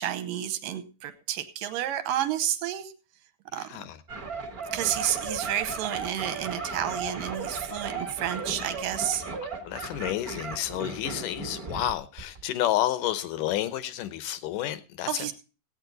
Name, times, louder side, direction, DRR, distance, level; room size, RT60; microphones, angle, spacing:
voice 1, 0.0-2.9 3.5-3.7 4.7-9.2 15.1-15.3, right 11 dB, 70° right, 2.5 m, -30 dB
voice 2, 3.6-4.0 9.6-15.3, left 13 dB, 70° left, 2.1 m, -30 dB
sound 1, 4.1-11.9 12.2-12.4, right 4 dB, 40° right, 1.4 m, -36 dB
17.0 x 8.8 x 3.9 m
omnidirectional pair, 4.4 m